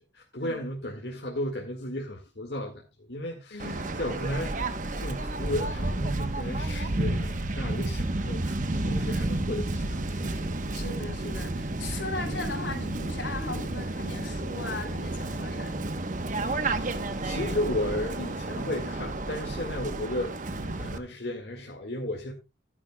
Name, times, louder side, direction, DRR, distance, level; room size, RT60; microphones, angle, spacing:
voice 1, 0.1-10.5 16.7-22.3, left 1 dB, 65° left, 1.9 m, -34 dB
voice 2, 3.5-4.0 10.7-15.9, left 3 dB, 80° left, 3.1 m, -38 dB
Waves surf, 3.6-21.0, right 2 dB, 45° right, 1.0 m, -31 dB
15.0 x 10.0 x 2.2 m
head